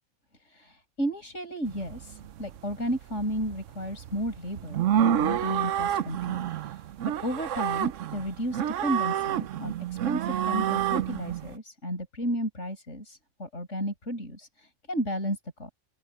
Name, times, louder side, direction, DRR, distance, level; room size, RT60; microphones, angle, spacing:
voice 1, 0.5-15.7, equal, 70° left, 7.6 m, -33 dB
sound 1, 1.7-11.5, right 10 dB, 80° right, 1.0 m, -29 dB
open air
omnidirectional pair, 1.3 m